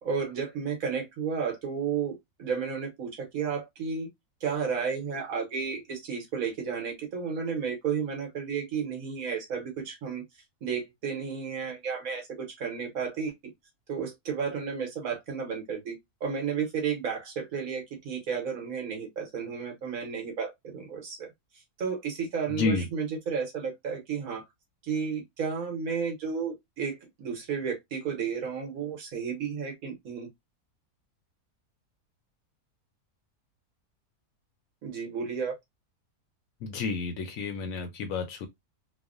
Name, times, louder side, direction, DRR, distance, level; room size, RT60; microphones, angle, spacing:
voice 1, 0.0-4.1 4.4-10.2 10.6-12.3 12.6-13.3 13.9-21.3 21.8-24.4 24.8-30.3 34.8-35.5, right 6 dB, 65° right, 1.4 m, -32 dB
voice 2, 22.5-22.8 36.6-38.5, left 4 dB, 70° left, 0.9 m, -30 dB
3.1 x 2.0 x 2.4 m
omnidirectional pair, 1.6 m